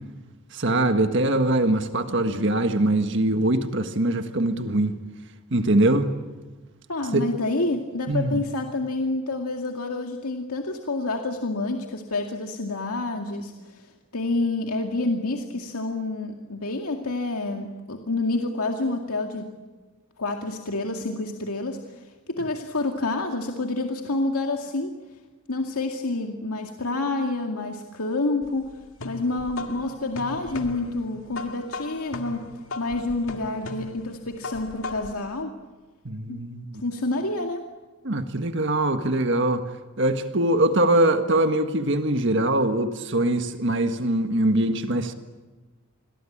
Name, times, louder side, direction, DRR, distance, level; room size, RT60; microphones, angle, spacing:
voice 1, 0.5-5.0 5.5-6.1 7.1-7.3 8.1-8.4 36.0-36.8 38.0-39.6 40.0-45.1, right 1 dB, 55° right, 7 dB, 1.6 m, -22 dB
voice 2, 6.9-19.5 20.2-25.0 25.5-32.5 32.8-35.5 36.3-36.4 36.8-37.7, left 2 dB, 85° left, 3 dB, 2.2 m, -28 dB
sound 1, 28.4-35.3, left 3 dB, 70° left, 2.1 m, -38 dB
29.0 x 22.5 x 8.7 m, 1.3 s
head